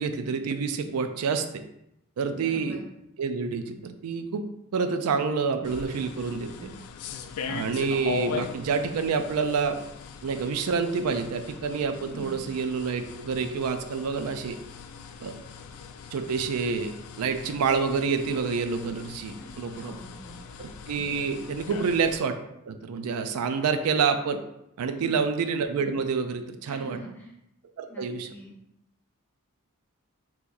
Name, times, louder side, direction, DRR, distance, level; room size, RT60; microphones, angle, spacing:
voice 1, 0.0-1.6 2.2-2.8 3.2-4.4 4.7-6.7 7.5-9.8 10.2-14.6 15.2-15.3 16.1-19.9 20.6-22.4 22.6-24.4 24.8-27.0 27.8-28.3, right 5 dB, 90° right, 8 dB, 0.4 m, -28 dB
voice 2, 2.4-2.9 6.6-6.8 12.0-12.4 19.3-20.4 21.6-21.9 24.9-25.2 26.7-27.3 27.9-28.5, right 1 dB, 10° left, -4 dB, 0.7 m, -45 dB
sound 1, 5.6-22.2, left 6 dB, 75° left, 0.3 m, -40 dB
2.9 x 2.5 x 3.7 m, 0.82 s
head